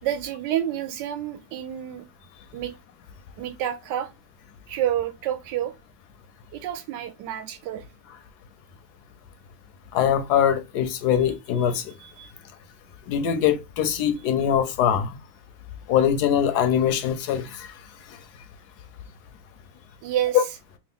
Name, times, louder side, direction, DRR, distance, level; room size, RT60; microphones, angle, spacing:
voice 1, 0.0-2.0 2.5-2.7 3.4-4.1 4.7-5.7 6.5-7.8 11.7-12.3 20.0-20.4, right 11 dB, 75° right, 1.2 m, -29 dB
voice 2, 9.9-11.9 13.1-15.2 15.9-17.7 20.3-20.4, left 9 dB, 70° left, 1.0 m, -22 dB
3.3 x 2.4 x 3.5 m
omnidirectional pair, 2.1 m